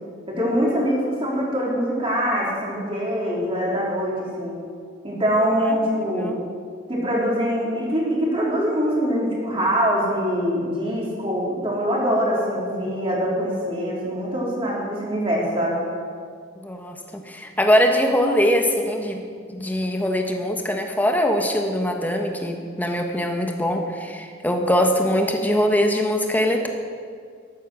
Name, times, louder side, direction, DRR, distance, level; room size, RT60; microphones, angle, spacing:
voice 1, 0.3-4.6 5.0-6.3 6.9-15.8, equal, 30° right, -4 dB, 3.5 m, -23 dB
voice 2, 5.7-6.4 16.6-19.2 19.5-26.7, equal, 10° left, 3 dB, 1.2 m, -22 dB
14.0 x 11.0 x 6.2 m, 2.1 s
head